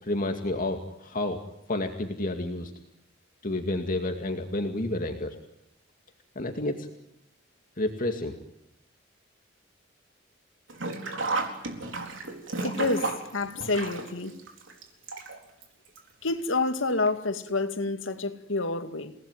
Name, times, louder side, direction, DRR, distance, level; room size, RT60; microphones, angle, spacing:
voice 1, 0.0-1.4 1.7-2.7 3.4-5.4 6.4-6.9 7.8-8.3, left 1 dB, 45° left, 2.3 m, -30 dB
Sink (filling or washing), 10.7-15.6 15.9-16.0 17.1-17.2 17.5-17.6, right 3 dB, 75° right, 4.3 m, -33 dB
voice 2, 12.6-14.4 16.2-19.1, left 3 dB, 80° left, 2.3 m, -28 dB
29.5 x 19.0 x 9.4 m
head